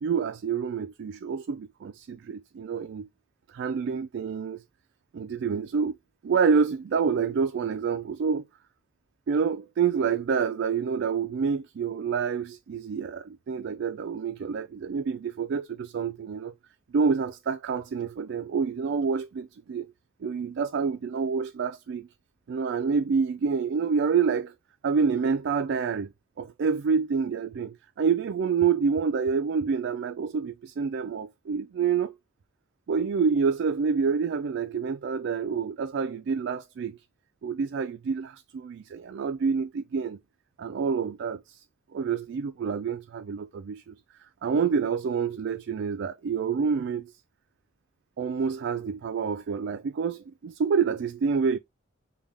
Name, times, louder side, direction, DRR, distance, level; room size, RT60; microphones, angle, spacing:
voice 1, 0.0-3.1 3.5-4.6 5.1-6.0 6.2-8.4 9.3-16.5 16.9-19.9 20.2-22.1 22.5-24.5 24.8-26.1 26.4-32.1 32.9-37.0 37.4-40.2 40.6-41.6 41.9-47.1 48.2-51.6, right 6 dB, 60° right, 0.3 m, -27 dB
5.4 x 2.3 x 3.4 m
head